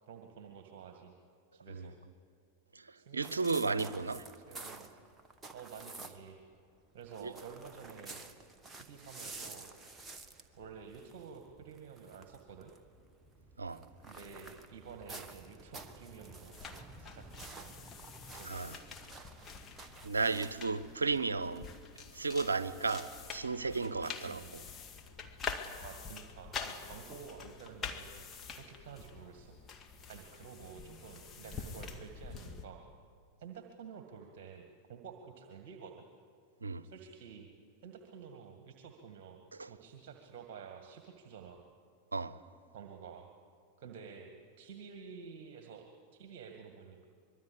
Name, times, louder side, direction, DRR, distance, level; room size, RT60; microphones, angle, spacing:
voice 1, 0.0-1.2 1.5-1.9 2.9-4.1 4.4-4.9 5.5-6.4 6.9-8.2 8.7-9.7 10.6-12.7 14.0-16.6 17.0-17.7 18.3-18.7 24.3-24.5 25.8-28.1 28.5-29.6 30.1-32.8 33.4-36.1 36.8-37.5 37.8-39.4 39.7-41.6 42.7-43.3 43.8-44.3 44.6-47.1, right 6 dB, 50° right, 2.0 m, -50 dB
voice 2, 3.1-4.2 7.2-7.3 13.6-13.8 18.5-18.8 20.0-21.7 22.1-24.6 36.6-36.8 39.6-39.7 42.1-42.4, right 4 dB, 75° right, 0.9 m, -34 dB
sound 1, 3.2-6.4 6.7-21.9, right 3 dB, 15° right, 1.7 m, -51 dB
sound 2, 16.5-32.6, left 5 dB, 20° left, 1.9 m, -46 dB
25.0 x 22.5 x 8.5 m
figure-of-eight pair, 90°, 0 cm